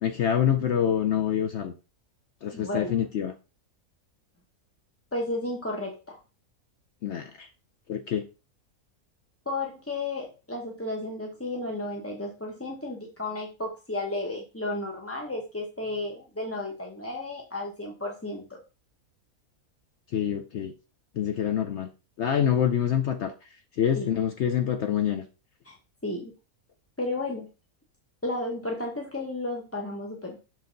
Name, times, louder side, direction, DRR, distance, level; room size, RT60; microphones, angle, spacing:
voice 1, 0.0-1.7 2.4-3.3 7.0-7.5 7.9-8.2 20.1-20.7 21.1-21.9 22.2-23.3 23.8-25.2, left 9 dB, 60° left, 0.8 m, -26 dB
voice 2, 2.5-2.9 5.1-6.2 9.5-18.6 24.0-24.1 25.6-25.8 26.0-26.3 27.0-27.5 28.2-30.4, left 2 dB, 15° left, 0.6 m, -33 dB
6.6 x 4.0 x 3.8 m
omnidirectional pair, 1.5 m